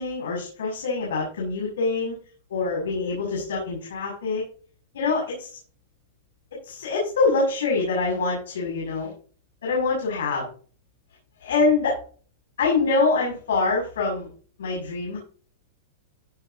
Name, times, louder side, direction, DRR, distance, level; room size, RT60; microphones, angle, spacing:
voice 1, 0.0-2.2 2.5-4.4 4.9-5.6 6.6-9.1 9.6-10.5 11.4-12.0 12.6-14.3 14.6-15.2, left 3 dB, 90° left, -3 dB, 6.6 m, -25 dB
16.0 x 7.0 x 3.8 m, 0.42 s
supercardioid pair, 145°, 0 cm